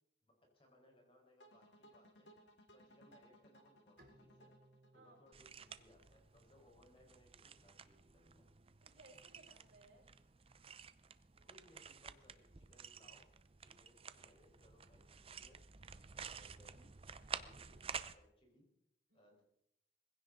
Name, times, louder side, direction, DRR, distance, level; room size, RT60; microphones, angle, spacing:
voice 1, 0.2-2.3 2.7-4.5 4.9-8.5 11.5-13.3 13.6-15.6 16.1-16.9 17.4-18.7 19.1-19.4, left 1 dB, 30° left, 0 dB, 5.0 m, -68 dB
sound 1, 1.4-6.5, equal, 75° left, 2.6 m, -65 dB
Bowed string instrument, 4.0-7.2, right 1 dB, 55° right, 2.6 m, -69 dB
voice 2, 4.9-5.8 8.8-10.1 19.1-19.4, right 2 dB, 80° right, -1 dB, 6.0 m, -65 dB
sound 2, 5.3-18.1, right 6 dB, 30° right, 0.6 m, -52 dB
21.0 x 16.0 x 3.9 m, 0.77 s
head